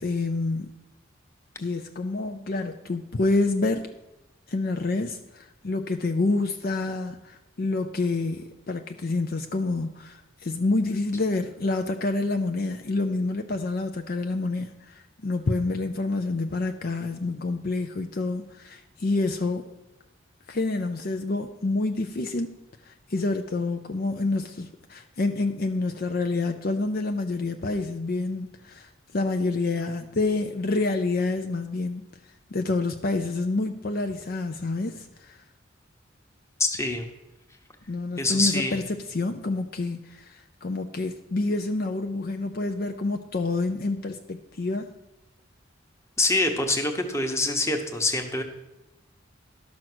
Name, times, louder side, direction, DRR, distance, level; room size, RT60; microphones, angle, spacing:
voice 1, 0.0-0.7 1.6-3.9 4.5-19.7 20.5-22.6 22.9-32.1 32.5-35.4 37.9-38.8 39.1-44.9, left 3 dB, 50° left, 6 dB, 0.6 m, -28 dB
voice 2, 36.6-37.0 38.2-38.8 46.2-48.4, left 2 dB, 15° left, 5 dB, 1.1 m, -25 dB
12.0 x 6.3 x 6.1 m, 0.98 s
head